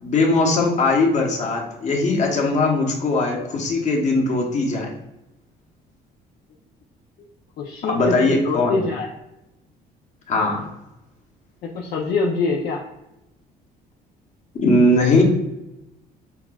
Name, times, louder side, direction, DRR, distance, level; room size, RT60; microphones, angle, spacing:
voice 1, 0.0-4.9 7.9-8.7 10.3-10.7 14.5-15.2, left 2 dB, 45° left, 0 dB, 1.0 m, -20 dB
voice 2, 7.6-9.1 11.6-12.8, left 3 dB, 65° left, -1 dB, 0.5 m, -24 dB
5.7 x 2.4 x 2.3 m, 0.92 s
cardioid pair, 110°, 17 cm